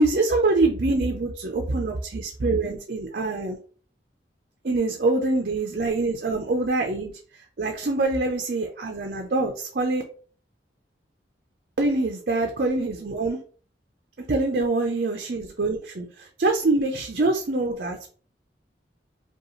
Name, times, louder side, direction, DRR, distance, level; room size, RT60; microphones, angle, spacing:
voice 1, 0.0-3.6 4.6-7.1 7.6-10.0 11.8-13.4 14.3-18.1, right 2 dB, 55° right, 3 dB, 0.5 m, -24 dB
5.2 x 2.3 x 3.0 m, 0.42 s
head